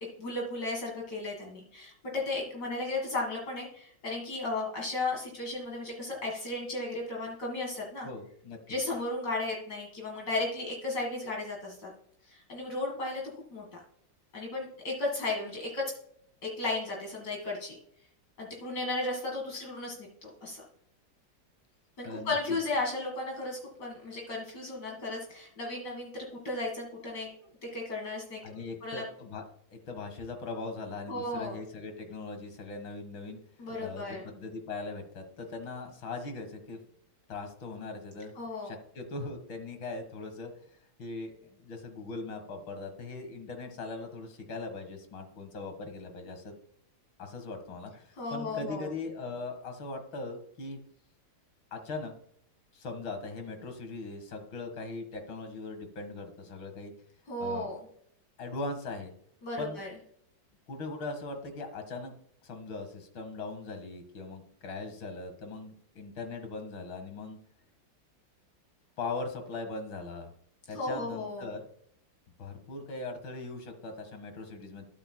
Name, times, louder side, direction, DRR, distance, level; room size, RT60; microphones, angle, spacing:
voice 1, 0.0-8.1 8.7-11.9 12.3-13.2 13.5-13.8 14.3-15.9 16.4-17.8 18.4-20.6 22.0-27.3 27.6-29.0 31.1-31.6 33.6-34.2 38.4-38.7 48.2-48.9 57.3-57.8 59.4-59.9 70.7-71.5, left 2 dB, 60° left, -2 dB, 2.4 m, -35 dB
voice 2, 8.0-8.6 22.0-22.6 28.4-29.4 29.7-33.4 33.8-36.8 37.3-38.3 38.6-40.5 41.0-46.6 47.2-50.8 51.7-52.1 52.7-56.9 57.4-57.7 58.4-59.1 59.6-59.8 60.7-62.1 62.4-67.4 69.0-70.3 70.7-71.7 72.4-74.9, left 3 dB, 85° left, 6 dB, 2.4 m, -40 dB
13.0 x 10.5 x 2.2 m, 0.67 s
omnidirectional pair, 2.1 m